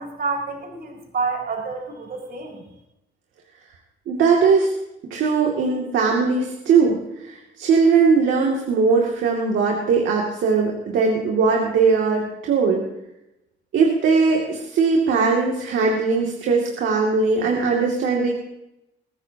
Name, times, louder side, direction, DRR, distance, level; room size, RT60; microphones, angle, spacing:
voice 1, 0.0-2.6, right 4 dB, 50° right, -1 dB, 5.2 m, -28 dB
voice 2, 4.1-4.7 5.1-7.0 7.2-12.8 13.7-18.3, right 5 dB, 75° right, -1 dB, 2.5 m, -19 dB
22.5 x 13.5 x 2.9 m, 0.87 s
cardioid pair, 90°, 20 cm